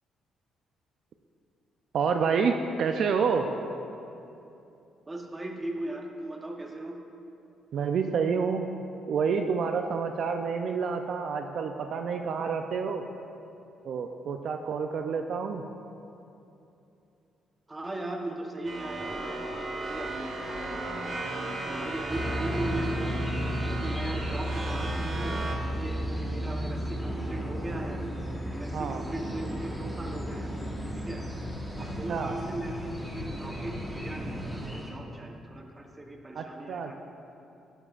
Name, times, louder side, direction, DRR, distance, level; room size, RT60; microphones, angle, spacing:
voice 1, 1.9-3.5 7.7-8.7 9.1-13.0 13.8-15.6 28.7-29.0 31.8-32.4 36.4-36.9, right 5 dB, 65° right, 5 dB, 0.4 m, -28 dB
voice 2, 5.1-7.0 17.7-21.1 21.7-23.2 23.7-28.0 28.5-30.5 31.0-31.2 31.8-36.9, right 2 dB, 20° right, 3 dB, 1.0 m, -38 dB
sound 1, 18.6-25.6, right 2 dB, 45° right, 1.6 m, -36 dB
sound 2, 22.1-34.9, equal, ahead, 1.3 m, -34 dB
10.5 x 9.9 x 2.5 m, 2.8 s
cardioid pair, 90°, 0 cm